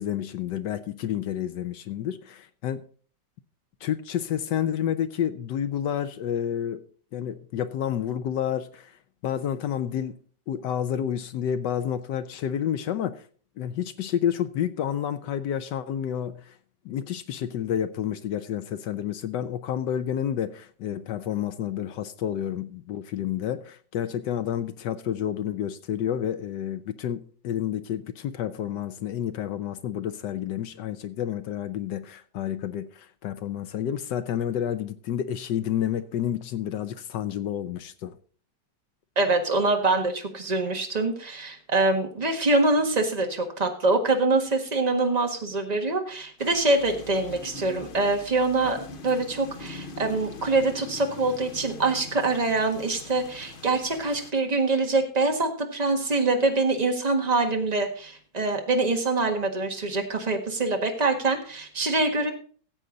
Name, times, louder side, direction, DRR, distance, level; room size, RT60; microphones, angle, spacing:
voice 1, 0.0-2.8 3.8-6.8 7.1-10.2 10.5-13.3 13.6-16.6 16.8-38.2, left 10 dB, 75° left, 1.3 m, -30 dB
voice 2, 39.1-48.8 49.0-62.3, right 2 dB, 25° right, 1.6 m, -24 dB
sound 1, 46.4-54.3, left 2 dB, 40° left, 0.9 m, -42 dB
15.0 x 8.0 x 3.9 m
omnidirectional pair, 1.9 m